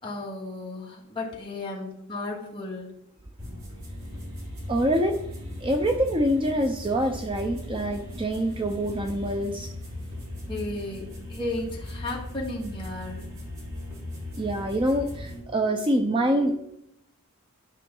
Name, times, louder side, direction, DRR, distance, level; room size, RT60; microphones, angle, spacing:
voice 1, 0.0-2.9 10.5-13.2, left 2 dB, 20° left, -3 dB, 2.1 m, -34 dB
sound 1, 3.4-15.4, left 1 dB, 75° right, 3.9 m, -38 dB
voice 2, 4.7-5.3 5.6-9.7 14.4-16.8, right 1 dB, 25° right, 4 dB, 0.6 m, -25 dB
12.5 x 5.7 x 3.9 m, 0.75 s
head